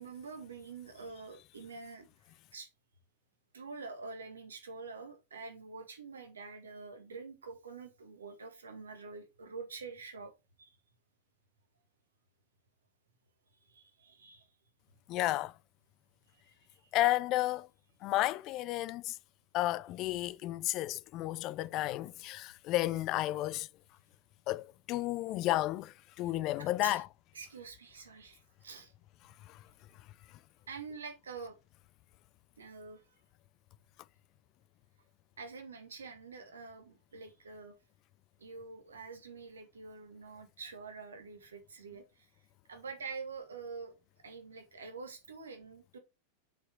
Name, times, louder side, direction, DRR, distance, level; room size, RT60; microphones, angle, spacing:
voice 1, 0.0-2.1 2.5-2.7 3.5-10.3 10.6-10.7 13.7-14.5 26.2-26.3 26.6-27.0 27.3-28.9 30.7-31.5 32.6-33.0 35.4-37.7 38.4-42.3 42.7-43.9 44.2-46.0, right 4 dB, 70° right, 1.8 m, -46 dB
voice 2, 15.1-15.5 16.9-17.7 18.0-19.2 19.5-23.7 24.5-27.1 29.5-29.6, left 16 dB, 40° left, 0.4 m, -32 dB
6.8 x 4.8 x 4.5 m
figure-of-eight pair, 90°, 0 cm